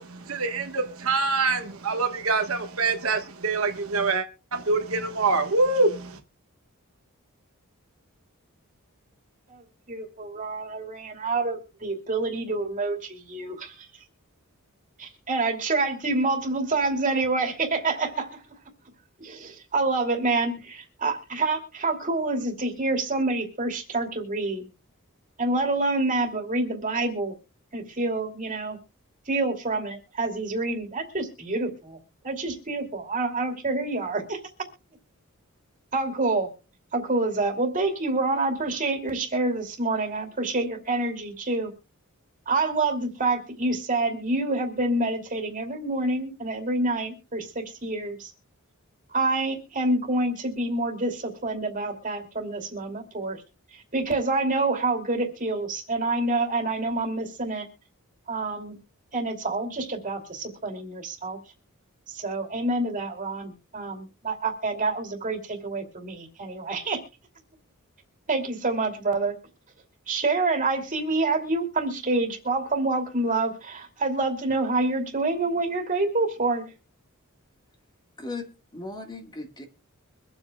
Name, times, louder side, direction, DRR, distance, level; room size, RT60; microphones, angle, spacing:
voice 1, 0.0-6.2, right 3 dB, 70° right, 6 dB, 1.3 m, -25 dB
voice 2, 9.5-13.9 15.0-18.4 19.2-24.7 25.4-27.3 27.7-28.8 29.3-32.0 32.2-34.4 35.9-36.5 36.9-41.7 42.5-48.3 49.1-53.4 53.7-57.7 58.3-58.8 59.1-61.4 62.1-67.0 68.3-69.3 70.1-76.7, right 2 dB, 35° right, 4 dB, 2.6 m, -27 dB
voice 3, 78.2-79.6, left 3 dB, 20° left, 4 dB, 1.6 m, -37 dB
24.0 x 8.0 x 2.3 m, 0.33 s
head